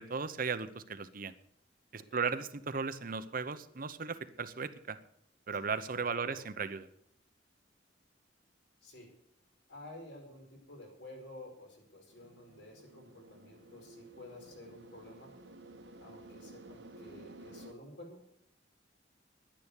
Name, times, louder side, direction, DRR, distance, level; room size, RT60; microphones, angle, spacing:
voice 1, 0.0-1.3 1.9-5.0 5.5-6.9, right 5 dB, 50° right, 13 dB, 0.8 m, -36 dB
voice 2, 5.9-6.4 8.8-9.1 9.7-15.3 16.0-18.2, left 1 dB, 70° left, 2 dB, 5.2 m, -51 dB
sound 1, 12.1-17.7, right 1 dB, 70° right, 1.3 m, -53 dB
10.5 x 10.5 x 8.3 m, 0.73 s
head